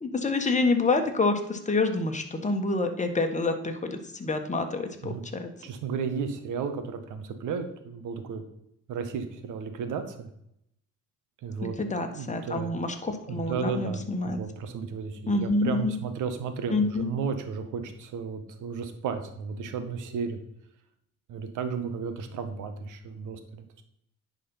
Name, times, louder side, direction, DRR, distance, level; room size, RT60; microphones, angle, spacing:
voice 1, 0.0-5.5 11.8-14.4 15.3-15.9 16.7-17.1, left 3 dB, 25° left, 5 dB, 1.5 m, -27 dB
voice 2, 5.6-8.4 8.9-10.3 11.4-11.8 12.1-12.8 13.3-20.4 21.3-23.8, right 6 dB, 85° right, 8 dB, 1.3 m, -34 dB
10.5 x 4.3 x 5.6 m, 0.75 s
cardioid pair, 90°, 30 cm